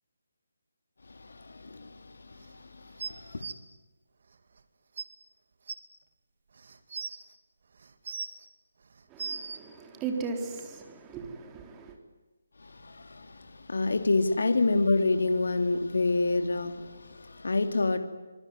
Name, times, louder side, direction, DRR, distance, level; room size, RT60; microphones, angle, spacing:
voice 1, 1.1-3.5 12.6-18.0, left 3 dB, 70° left, 2.7 m, -28 dB
sound 1, 3.0-3.5 4.6-4.7 5.0-5.1 5.7-5.8 6.6-7.2 7.8-8.4 8.9-9.6 10.6-10.7, right 5 dB, 55° right, 2.6 m, -37 dB
voice 2, 9.1-11.9, right 4 dB, 15° right, 4.0 m, -37 dB
26.0 x 23.5 x 9.6 m
figure-of-eight pair, 155°, 0 cm